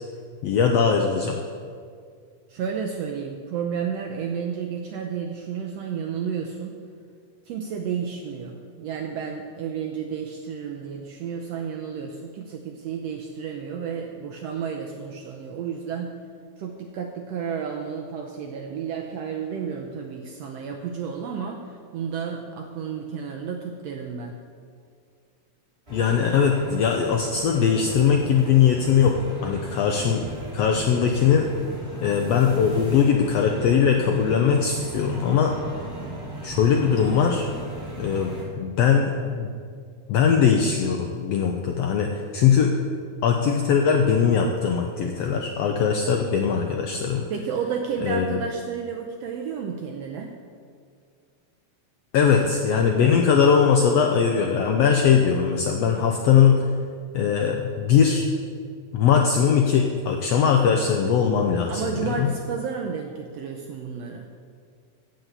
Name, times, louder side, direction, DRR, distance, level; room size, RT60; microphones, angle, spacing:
voice 1, 0.4-1.4 25.9-30.3 30.5-31.5 32.0-35.6 36.4-37.5 38.0-39.5 40.1-42.7 43.2-47.2 48.0-48.4 52.1-56.7 57.1-58.3 58.9-62.3, left 7 dB, 80° left, 3 dB, 1.4 m, -20 dB
voice 2, 2.5-6.8 7.4-16.2 16.6-24.4 47.3-50.3 61.7-64.3, right 6 dB, 80° right, 2 dB, 1.5 m, -31 dB
sound 1, 25.9-38.4, right 1 dB, 20° right, 2.6 m, -37 dB
8.5 x 8.0 x 8.0 m, 2.1 s
omnidirectional pair, 3.7 m